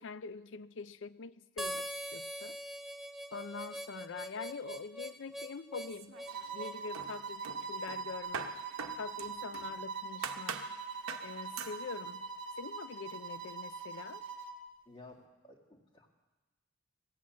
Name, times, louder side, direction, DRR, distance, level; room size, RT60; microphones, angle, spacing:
voice 1, 0.0-2.6 3.3-6.1 6.5-8.5 9.0-10.6 11.2-12.2 12.6-14.2, left 5 dB, 60° left, 16 dB, 0.4 m, -44 dB
Harmonica, 1.6-6.8, equal, ahead, 0.5 m, -42 dB
sound 1, 5.8-6.6 6.9-9.7 10.2-10.7 11.1-11.3 11.6-11.8, right 6 dB, 80° right, 0.9 m, -43 dB
sound 2, 6.3-14.6, right 5 dB, 50° right, 1.1 m, -42 dB
voice 2, 14.9-16.1, left 2 dB, 25° left, -1 dB, 1.9 m, -55 dB
17.0 x 8.4 x 7.3 m, 1.2 s
head